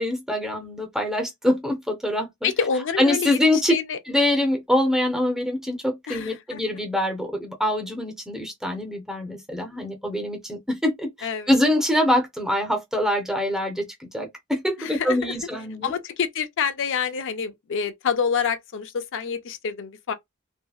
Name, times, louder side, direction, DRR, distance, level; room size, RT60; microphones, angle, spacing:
voice 1, 0.0-2.5 3.0-3.7 4.1-15.9, left 1 dB, ahead, 0.7 m, -24 dB
voice 2, 2.4-4.0 6.1-6.6 11.2-11.5 14.8-15.3 15.8-20.1, left 6 dB, 60° left, 0.5 m, -27 dB
2.7 x 2.7 x 2.3 m
head